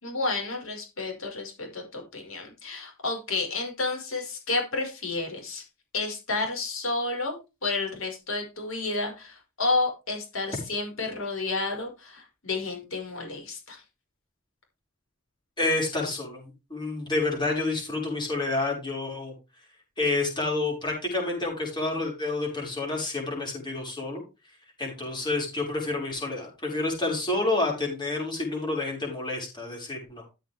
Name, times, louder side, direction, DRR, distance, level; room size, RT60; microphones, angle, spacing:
voice 1, 0.0-5.6 5.9-13.8, left 3 dB, 80° left, 2 dB, 5.5 m, -31 dB
voice 2, 15.6-19.3 20.0-24.2 24.8-30.2, left 2 dB, 20° left, -1 dB, 6.0 m, -29 dB
14.0 x 7.9 x 3.6 m, 0.28 s
head